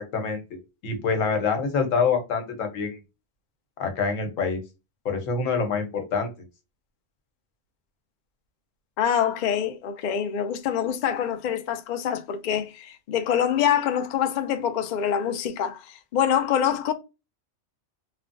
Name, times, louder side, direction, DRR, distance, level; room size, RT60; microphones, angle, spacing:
voice 1, 0.8-3.0 3.8-4.6 5.0-6.3, left 5 dB, 90° left, 1.2 m, -25 dB
voice 2, 9.0-16.9, left 9 dB, 70° left, 0.4 m, -25 dB
3.2 x 2.0 x 2.5 m
omnidirectional pair, 1.3 m